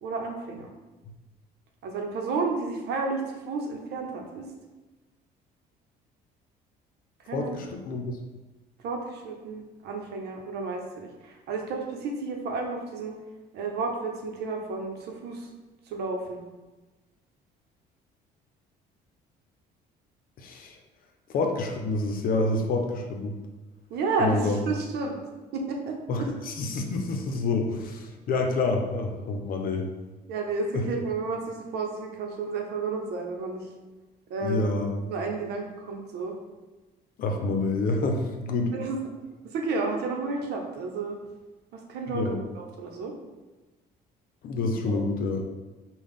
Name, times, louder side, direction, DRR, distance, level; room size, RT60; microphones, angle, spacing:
voice 1, 0.0-0.7 1.8-4.5 7.2-7.6 8.8-13.2 13.5-15.5 15.9-16.4 23.9-25.2 25.5-26.3 30.3-33.7 34.3-34.7 35.1-36.4 38.7-39.0 39.5-41.2 41.7-42.2 42.5-43.1 44.9-45.0, right 4 dB, 75° right, 2 dB, 0.8 m, -31 dB
voice 2, 7.3-8.2 20.4-20.8 21.3-23.4 24.2-24.6 26.1-29.9 30.7-30.9 34.4-34.9 37.2-38.7 42.1-42.4 44.4-45.5, left 3 dB, 60° left, 3 dB, 0.7 m, -28 dB
5.6 x 2.3 x 3.6 m, 1.2 s
cardioid pair, 110°, 17 cm